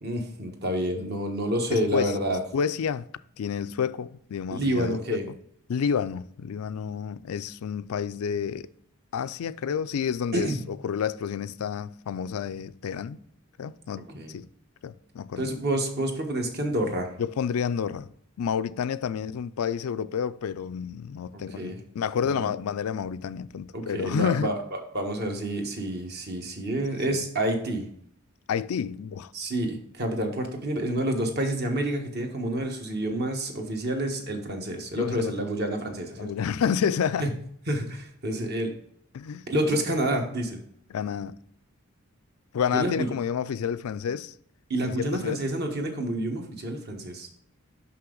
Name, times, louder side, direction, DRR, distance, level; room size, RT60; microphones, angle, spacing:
voice 1, 0.0-2.4 4.5-5.2 10.3-10.6 14.1-14.4 15.4-17.1 21.6-21.8 22.2-22.5 23.7-27.9 29.3-36.3 37.2-37.3 37.7-38.7 39.5-40.6 42.7-43.1 44.7-47.3, right 1 dB, 50° right, 1.2 m, -28 dB
voice 2, 1.7-2.1 2.5-3.1 3.4-5.2 5.7-8.7 9.1-13.2 13.6-14.5 14.8-15.5 17.2-18.1 18.4-24.5 27.1-27.2 28.5-29.3 35.0-35.3 36.2-37.3 39.1-39.4 40.9-41.4 42.5-44.3 44.8-45.4, left 7 dB, 85° left, 0.4 m, -29 dB
5.9 x 5.7 x 3.8 m
head